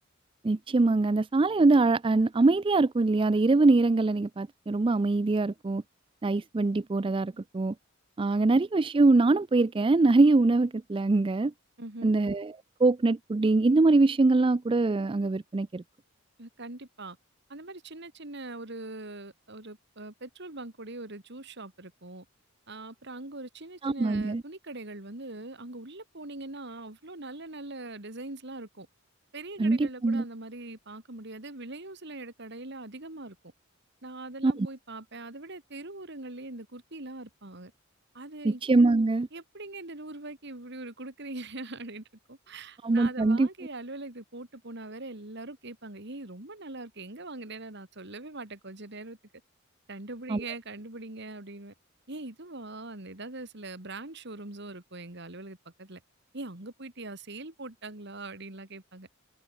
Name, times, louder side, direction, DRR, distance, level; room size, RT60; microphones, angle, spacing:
voice 1, 0.4-5.8 6.2-7.7 8.2-11.5 12.0-12.5 12.8-15.8 23.8-24.4 29.6-30.2 34.4-34.7 38.4-39.3 42.8-43.5 50.3-50.4, right 3 dB, 25° right, 0.4 m, -23 dB
voice 2, 11.8-12.1 16.4-17.2 17.5-22.3 22.7-28.9 29.3-33.4 34.0-37.7 38.1-38.6 39.3-49.2 49.9-51.7 52.1-56.0 56.3-59.1, right 2 dB, 55° right, 2.7 m, -42 dB
open air
head